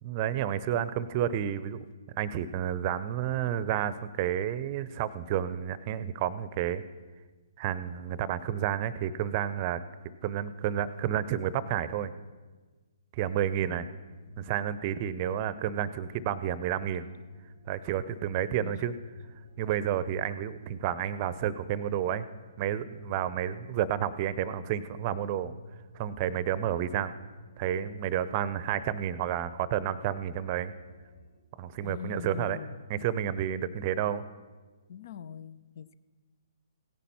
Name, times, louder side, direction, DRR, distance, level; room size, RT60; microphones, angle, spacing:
voice 1, 0.0-1.8 2.2-6.8 7.6-9.8 10.2-12.1 13.1-13.9 14.4-17.1 17.7-18.9 19.6-22.2 22.6-25.5 25.9-27.1 27.6-30.7 31.6-32.6 32.9-34.2, right 10 dB, 30° right, 16 dB, 0.7 m, -30 dB
sound 1, 13.2-31.3, left 1 dB, 70° left, 4.8 m, -53 dB
voice 2, 13.6-13.9 18.6-18.8 31.8-32.8 34.9-35.9, left 8 dB, 50° left, 16 dB, 0.7 m, -42 dB
17.0 x 10.0 x 5.7 m, 1.3 s
figure-of-eight pair, 130°, 2 cm